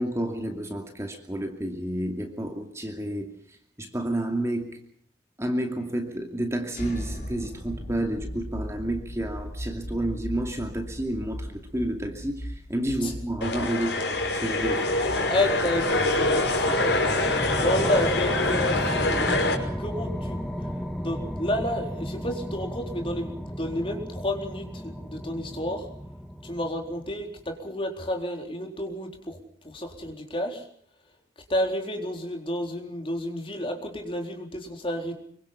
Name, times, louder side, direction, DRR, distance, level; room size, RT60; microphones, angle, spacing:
voice 1, 0.0-4.8 5.4-14.9, right 1 dB, 15° right, 2.5 m, -30 dB
sound 1, 6.7-18.5, equal, 45° left, 4.4 m, -39 dB
sound 2, 13.4-19.6, left 2 dB, 70° left, 5.6 m, -25 dB
sound 3, 14.9-27.4, equal, ahead, 1.5 m, -34 dB
voice 2, 15.3-17.0 17.6-19.3 19.8-20.4 20.9-25.8 26.4-29.4 29.6-30.6 31.5-35.1, left 1 dB, 30° left, 4.1 m, -30 dB
26.0 x 24.0 x 5.8 m
head